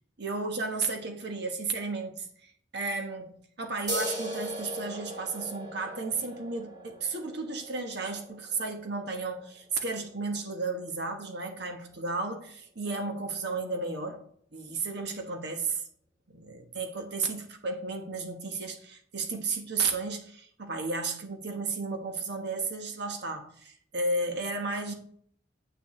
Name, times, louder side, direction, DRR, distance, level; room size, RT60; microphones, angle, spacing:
voice 1, 0.2-14.2 14.5-15.8 16.3-24.9, right 3 dB, 60° right, 1.3 m, -33 dB
sound 1, 3.9-11.0, right 1 dB, 20° right, 2.1 m, -40 dB
8.9 x 8.8 x 3.2 m
head